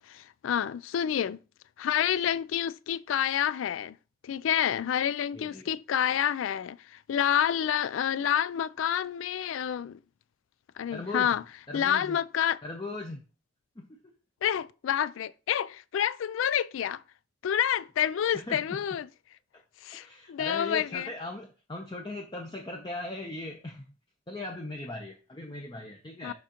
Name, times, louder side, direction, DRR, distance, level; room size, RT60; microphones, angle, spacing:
voice 1, 0.1-1.4 1.8-4.0 4.2-10.0 10.8-11.4 11.7-12.6 14.4-17.0 17.4-19.1 19.8-21.1 26.2-26.3, left 9 dB, 80° left, 0.3 m, -28 dB
voice 2, 5.3-5.7 10.9-11.3 11.7-12.2 12.6-13.2 13.8-14.0 18.3-18.8 20.0-23.9 24.3-26.3, left 2 dB, 25° left, 0.6 m, -39 dB
10.5 x 3.6 x 2.9 m
head